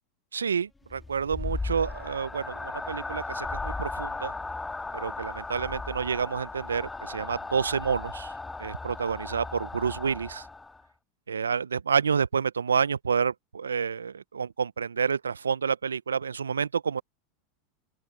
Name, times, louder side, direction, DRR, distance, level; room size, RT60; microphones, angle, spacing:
voice 1, 0.3-4.3 4.9-8.3 8.6-10.5 11.3-17.0, right 6 dB, 85° right, 0.9 m, -29 dB
sound 1, 0.9-10.9, left 3 dB, 10° left, 2.0 m, -36 dB
open air
figure-of-eight pair, 85°, 0 cm